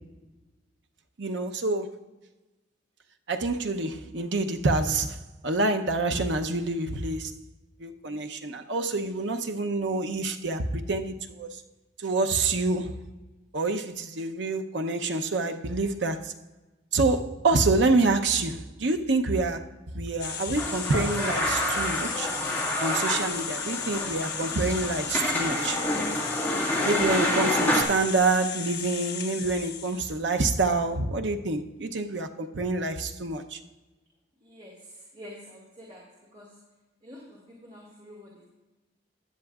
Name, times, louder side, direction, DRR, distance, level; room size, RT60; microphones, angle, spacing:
voice 1, 1.2-1.9 3.3-5.2 5.4-7.4 7.8-11.6 12.0-12.9 13.5-16.3 16.9-19.6 19.9-22.3 22.8-25.8 26.8-33.6, right 3 dB, 70° right, 0.7 m, -27 dB
sound 1, 20.2-30.2, left 8 dB, 60° left, 1.1 m, -36 dB
sound 2, 20.6-27.8, left 1 dB, 10° left, 1.9 m, -28 dB
voice 2, 34.4-36.0 36.3-36.6 37.0-38.4, equal, 35° right, 2.1 m, -47 dB
15.5 x 10.5 x 2.4 m
head